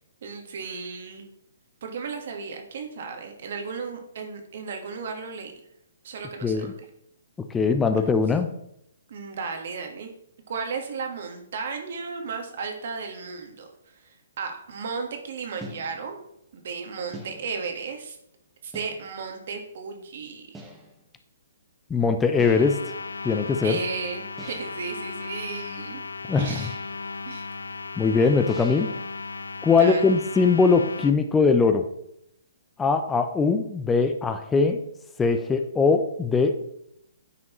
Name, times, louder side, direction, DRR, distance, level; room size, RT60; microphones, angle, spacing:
voice 1, 0.2-1.2 1.8-5.5 6.0-6.7 9.1-10.1 10.5-13.7 14.4-16.2 16.5-18.2 18.6-20.6 23.6-26.0 26.4-26.8 27.2-27.5 29.7-30.2, right 5 dB, 60° right, 4 dB, 1.5 m, -34 dB
voice 2, 6.4-6.7 7.5-8.5 21.9-22.8 23.2-23.8 26.3-26.7 28.0-28.9 29.6-31.8 32.8-34.8 35.2-36.6, left 4 dB, 10° left, 7 dB, 0.5 m, -21 dB
sound 1, 15.6-16.3 17.1-17.8 18.7-19.3 20.5-21.0 22.4-22.9 24.4-24.9 26.5-27.1 28.5-29.0, equal, 5° right, 1.1 m, -44 dB
sound 2, 22.3-31.1, left 3 dB, 85° left, 0.5 m, -36 dB
9.3 x 5.2 x 3.0 m, 0.77 s
hypercardioid pair, 135°, 0 cm